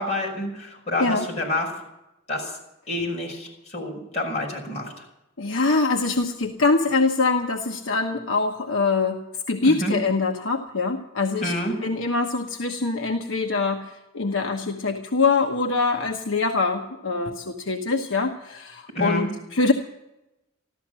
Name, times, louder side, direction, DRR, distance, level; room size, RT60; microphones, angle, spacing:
voice 1, 0.0-1.8 2.3-2.6 2.9-5.0 9.6-10.0 11.4-11.8 18.9-19.3, left 1 dB, 35° left, -1 dB, 5.9 m, -28 dB
voice 2, 5.4-11.5 11.8-19.7, left 3 dB, 70° left, 3 dB, 1.1 m, -24 dB
14.5 x 13.0 x 7.5 m, 0.91 s
head